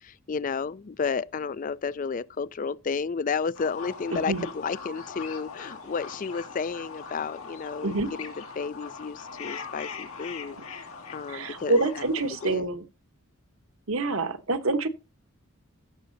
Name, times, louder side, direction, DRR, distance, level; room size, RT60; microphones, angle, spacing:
voice 1, 0.0-10.8 11.1-12.0 12.4-12.7, left 5 dB, 40° left, 0.4 m, -32 dB
sound 1, 3.5-12.6, left 5 dB, 85° left, 2.1 m, -41 dB
voice 2, 4.1-4.5 7.8-8.1 11.3-12.8 13.9-14.9, right 2 dB, 70° right, 1.2 m, -26 dB
15.0 x 6.7 x 2.7 m
head